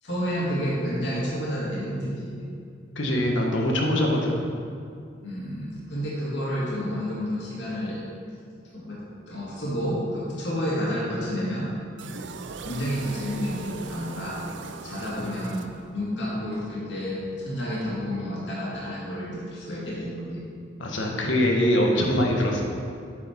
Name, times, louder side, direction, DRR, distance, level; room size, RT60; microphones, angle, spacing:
voice 1, 0.0-2.4 5.2-8.0 8.7-9.0 9.3-11.7 12.6-14.4 14.8-20.4 21.2-21.3, equal, 65° left, -7 dB, 2.4 m, -30 dB
voice 2, 2.9-4.4 15.2-15.3 20.8-22.6, left 1 dB, 85° left, 0 dB, 1.4 m, -23 dB
sound 1, 12.0-16.2, right 5 dB, 70° right, 0.5 m, -40 dB
8.8 x 6.7 x 4.5 m, 2.3 s
head